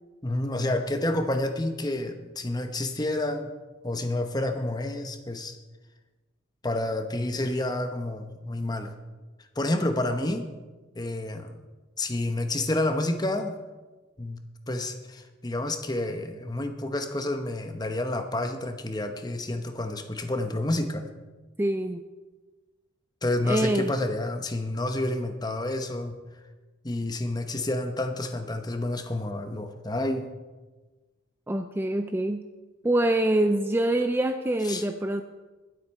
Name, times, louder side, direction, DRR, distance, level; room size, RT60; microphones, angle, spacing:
voice 1, 0.2-3.5 3.8-5.6 6.6-8.9 9.6-10.5 10.9-11.6 12.0-13.6 14.2-14.4 14.7-21.1 23.2-26.2 26.8-30.3 34.6-34.8, left 1 dB, 20° left, 6 dB, 0.9 m, -29 dB
voice 2, 21.6-22.0 23.4-23.9 31.5-32.4 32.8-35.2, right 1 dB, 10° right, 7 dB, 0.4 m, -25 dB
20.5 x 8.0 x 4.4 m, 1.3 s
head